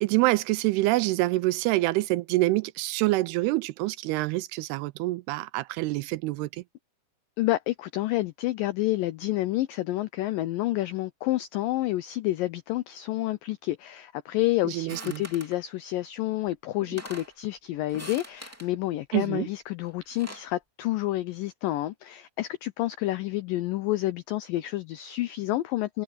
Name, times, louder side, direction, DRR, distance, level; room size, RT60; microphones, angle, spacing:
voice 1, 0.0-6.5 14.7-15.2 19.1-19.5, right 19 dB, 85° right, 2.5 m, -26 dB
voice 2, 7.4-26.0, left 16 dB, 85° left, 1.9 m, -29 dB
sound 1, 14.9-15.6 16.5-16.6 16.8-17.3 17.9-18.7 19.9-20.5, right 1 dB, 5° right, 1.6 m, -43 dB
omnidirectional pair, 4.8 m